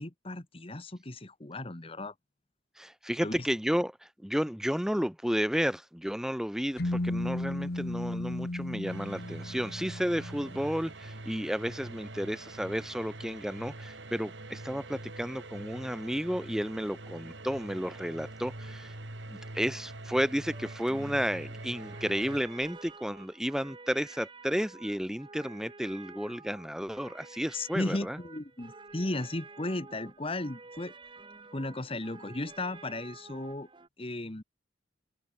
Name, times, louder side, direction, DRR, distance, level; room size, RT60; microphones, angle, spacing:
voice 1, 0.0-2.1 3.2-3.3 27.5-30.9 31.5-33.7 34.0-34.4, left 2 dB, 30° left, 1.5 m, -35 dB
voice 2, 2.8-19.0 19.3-28.2, equal, 5° right, 1.3 m, -32 dB
sound 1, 6.8-10.6, left 1 dB, 60° left, 1.3 m, -35 dB
sound 2, 8.8-22.4, right 2 dB, 90° right, 3.3 m, -44 dB
sound 3, 20.5-33.9, right 3 dB, 30° right, 1.4 m, -50 dB
head